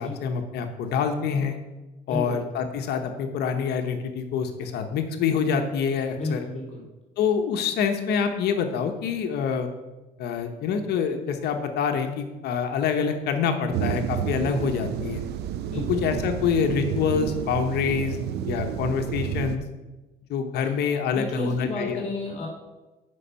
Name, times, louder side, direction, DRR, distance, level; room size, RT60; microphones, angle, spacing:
voice 1, 0.0-1.6 2.1-6.4 7.2-9.7 10.2-15.2 15.9-19.6 20.3-22.0, left 6 dB, 75° left, 6 dB, 1.0 m, -26 dB
voice 2, 2.1-2.4 6.1-6.8 15.7-16.0 21.1-22.5, left 2 dB, 40° left, -1 dB, 3.0 m, -32 dB
sound 1, 13.7-19.6, right 9 dB, 80° right, 0.7 m, -30 dB
9.8 x 5.5 x 5.5 m, 1.1 s
cardioid pair, 110°, 17 cm